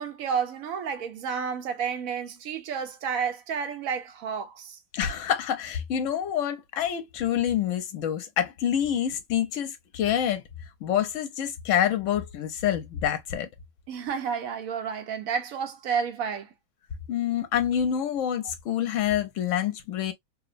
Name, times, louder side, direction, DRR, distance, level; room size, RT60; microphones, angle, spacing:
voice 1, 0.0-4.8 13.9-16.5, right 6 dB, 80° right, 1.1 m, -31 dB
voice 2, 4.9-10.4 10.8-13.5 17.1-20.1, left 10 dB, 70° left, 1.0 m, -27 dB
2.8 x 2.0 x 2.5 m
omnidirectional pair, 1.4 m